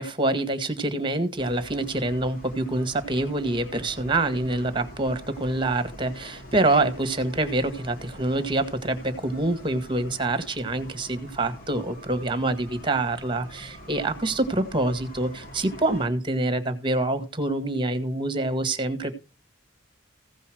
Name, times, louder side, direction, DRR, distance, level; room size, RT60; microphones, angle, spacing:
voice 1, 0.0-19.1, right 2 dB, 25° right, 10 dB, 1.8 m, -26 dB
sound 1, 1.4-16.1, equal, 50° left, 2.6 m, -44 dB
16.0 x 5.4 x 6.3 m, 0.33 s
head